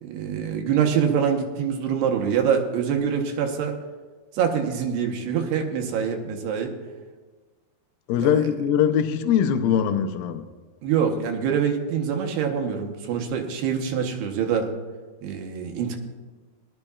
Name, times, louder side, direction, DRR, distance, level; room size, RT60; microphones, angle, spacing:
voice 1, 0.0-3.8 4.3-6.7 8.2-8.5 10.8-14.7 15.2-16.0, right 7 dB, 80° right, 3.0 m, -25 dB
voice 2, 8.1-10.4, left 8 dB, 75° left, 2.3 m, -22 dB
19.5 x 12.0 x 2.4 m
omnidirectional pair, 4.6 m